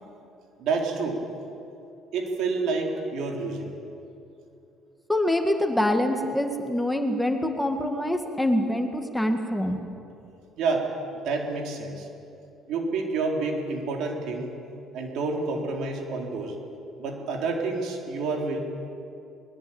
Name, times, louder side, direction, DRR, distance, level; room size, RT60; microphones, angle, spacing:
voice 1, 0.6-1.2 2.1-3.7 10.6-10.9 11.2-12.1 12.7-14.5 14.9-16.6 17.0-18.6, right 3 dB, 75° right, 1 dB, 4.2 m, -28 dB
voice 2, 5.1-9.8, left 1 dB, 5° left, 4 dB, 2.1 m, -25 dB
21.5 x 21.5 x 8.9 m, 2.7 s
cardioid pair, 100°, 0 cm